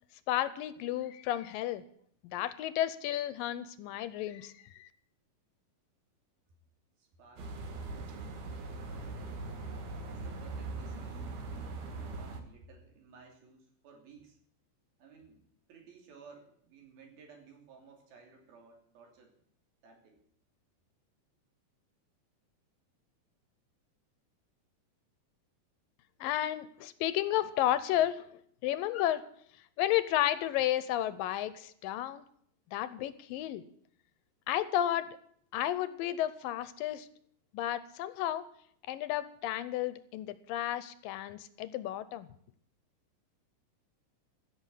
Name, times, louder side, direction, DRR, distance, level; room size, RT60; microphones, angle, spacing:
voice 1, 0.3-1.8 2.2-4.9 26.2-29.2 29.8-32.2 32.7-33.6 34.5-35.2 35.5-37.1 37.5-38.5 38.9-42.3, left 13 dB, 80° left, 15 dB, 2.3 m, -32 dB
voice 2, 7.0-8.1 8.8-9.5 10.1-11.4 12.0-14.4 15.0-15.4 15.7-19.3 19.8-20.2, right 4 dB, 80° right, 2 dB, 4.8 m, -56 dB
sound 1, 7.4-12.4, right 3 dB, 65° right, 3.0 m, -41 dB
15.5 x 6.9 x 9.2 m, 0.64 s
omnidirectional pair, 4.2 m